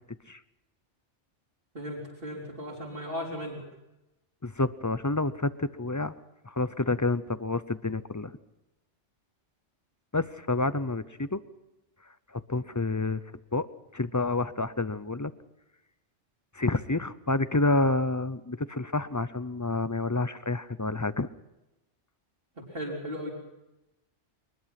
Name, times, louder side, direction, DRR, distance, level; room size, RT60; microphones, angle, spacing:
voice 1, 1.7-3.6 22.6-23.3, equal, 50° right, -1 dB, 4.5 m, -36 dB
voice 2, 4.4-6.1 6.4-8.3 10.1-11.4 12.3-13.2 13.5-13.7 13.9-15.3 16.5-21.3, left 2 dB, 20° left, 14 dB, 0.5 m, -28 dB
23.0 x 20.5 x 5.9 m, 0.95 s
omnidirectional pair, 1.2 m